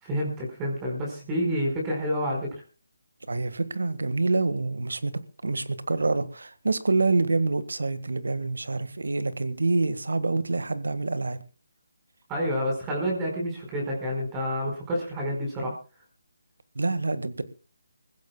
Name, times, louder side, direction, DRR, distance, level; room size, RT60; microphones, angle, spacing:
voice 1, 0.0-2.5 12.3-15.7, equal, 15° right, -1 dB, 4.8 m, -28 dB
voice 2, 3.3-5.1 5.4-11.4 16.7-17.4, right 3 dB, 85° right, 12 dB, 1.7 m, -26 dB
26.5 x 15.5 x 2.3 m, 0.33 s
hypercardioid pair, 165°, 0 cm